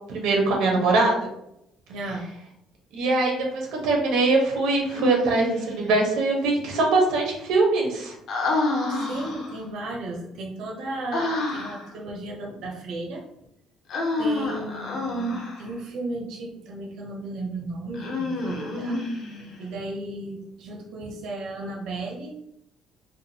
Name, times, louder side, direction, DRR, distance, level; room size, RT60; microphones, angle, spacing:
voice 1, 0.1-1.3 2.9-8.1, right 3 dB, 85° right, -1 dB, 1.0 m, -22 dB
voice 2, 1.9-2.2 8.9-13.2 14.2-19.0 19.6-22.3, right 2 dB, 65° right, -1 dB, 0.7 m, -34 dB
Human voice, 4.9-5.8 8.3-9.6 11.1-11.9 13.9-15.7 17.9-19.6, left 2 dB, 50° left, 0.6 m, -28 dB
3.5 x 2.2 x 2.7 m, 0.79 s
cardioid pair, 180°, 0 cm